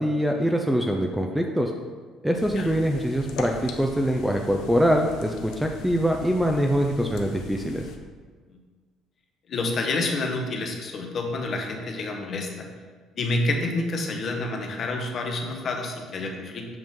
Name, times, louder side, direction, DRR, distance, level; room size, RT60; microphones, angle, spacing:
voice 1, 0.0-1.7 2.2-7.8, equal, ahead, 2 dB, 0.4 m, -24 dB
sound 1, 2.3-8.0, left 5 dB, 75° left, 0.7 m, -40 dB
voice 2, 9.5-12.7 13.2-16.7, left 2 dB, 40° left, 3 dB, 0.9 m, -28 dB
7.8 x 5.3 x 3.7 m, 1.5 s
cardioid pair, 160°, 0 cm